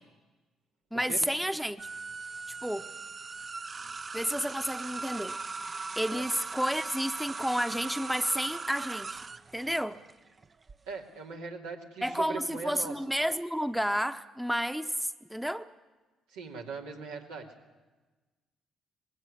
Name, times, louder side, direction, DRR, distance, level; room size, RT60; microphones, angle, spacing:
voice 1, 0.9-1.8 2.6-2.8 4.1-5.4 6.0-9.2 9.5-10.0 12.0-15.7, equal, 5° right, 10 dB, 1.0 m, -31 dB
sound 1, 1.8-10.7, right 4 dB, 35° right, 0.7 m, -39 dB
voice 2, 10.9-13.0 16.3-17.5, right 5 dB, 85° right, -2 dB, 2.8 m, -40 dB
20.5 x 16.5 x 9.9 m, 1.2 s
hypercardioid pair, 55°, 0 cm